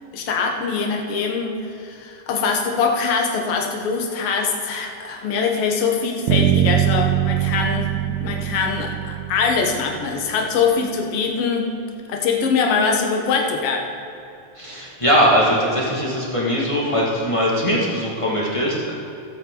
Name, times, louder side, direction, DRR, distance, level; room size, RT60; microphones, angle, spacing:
voice 1, 0.1-7.9 8.2-11.7 12.1-13.9, left 5 dB, 60° left, 2 dB, 1.8 m, -23 dB
Bass guitar, 6.3-10.3, right 12 dB, 70° right, 2.1 m, -22 dB
voice 2, 14.6-18.9, equal, 15° left, -5 dB, 1.0 m, -20 dB
17.0 x 8.1 x 3.9 m, 2.8 s
omnidirectional pair, 3.6 m